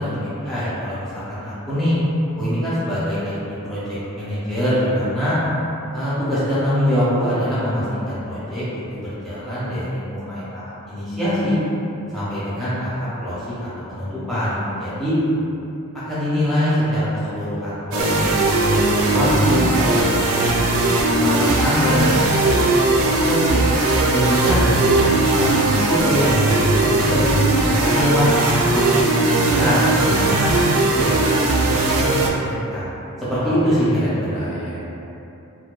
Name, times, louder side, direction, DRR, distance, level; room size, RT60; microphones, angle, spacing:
voice 1, 0.0-1.9 2.4-3.4 3.6-5.4 5.9-8.6 8.9-11.6 12.1-15.2 16.1-18.3 18.6-20.9 21.2-23.7 24.1-27.2 27.6-29.0 29.6-30.5 30.8-32.8 33.2-34.5, equal, ahead, -13 dB, 0.6 m, -23 dB
sound 1, 17.9-32.3, right 2 dB, 75° right, 0.3 m, -18 dB
voice 2, 33.4-34.8, equal, 55° left, -7 dB, 0.6 m, -32 dB
2.6 x 2.2 x 2.3 m, 2.8 s
head